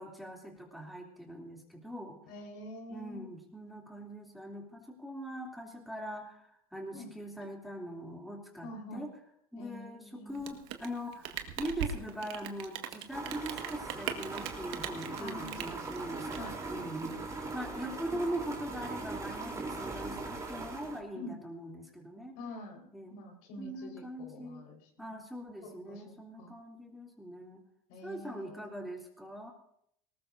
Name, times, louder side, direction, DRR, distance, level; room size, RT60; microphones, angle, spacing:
voice 1, 0.0-2.2 2.9-9.1 9.5-17.2 17.5-22.4 22.9-23.1 23.6-24.6 25.0-27.6 28.0-29.5, right 1 dB, ahead, -1 dB, 3.1 m, -41 dB
voice 2, 2.3-3.3 6.9-7.1 8.6-9.1 9.6-10.5 15.2-16.6 21.1-21.4 22.4-25.1 25.6-26.5 27.9-28.7, left 1 dB, 80° left, 1 dB, 4.6 m, -47 dB
Rain, 10.3-17.1, right 9 dB, 65° right, 1.7 m, -40 dB
sound 1, 13.1-21.0, right 3 dB, 15° right, 3.7 m, -40 dB
19.5 x 19.0 x 2.7 m, 0.70 s
supercardioid pair, 115°, 18 cm